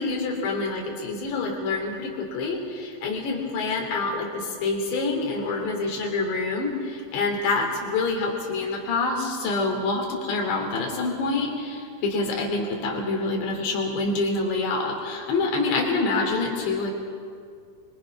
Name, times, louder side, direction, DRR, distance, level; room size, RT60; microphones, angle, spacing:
voice 1, 0.0-16.9, left 3 dB, 60° left, 1 dB, 5.3 m, -26 dB
25.5 x 24.5 x 6.1 m, 2.3 s
omnidirectional pair, 5.8 m